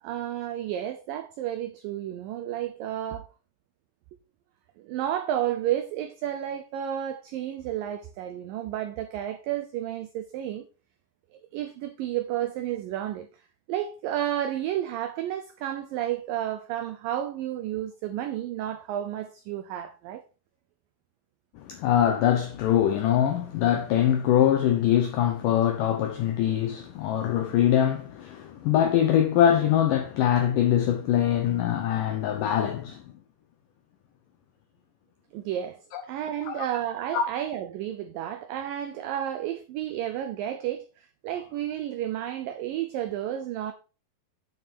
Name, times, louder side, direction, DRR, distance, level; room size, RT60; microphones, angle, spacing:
voice 1, 0.0-3.3 4.8-10.7 11.5-13.3 13.7-20.2 35.3-43.7, right 11 dB, 90° right, 1.9 m, -31 dB
voice 2, 21.6-33.0 35.9-36.0 36.5-36.7 37.1-37.2, left 10 dB, 80° left, 1.9 m, -23 dB
9.1 x 6.0 x 4.5 m
omnidirectional pair, 4.9 m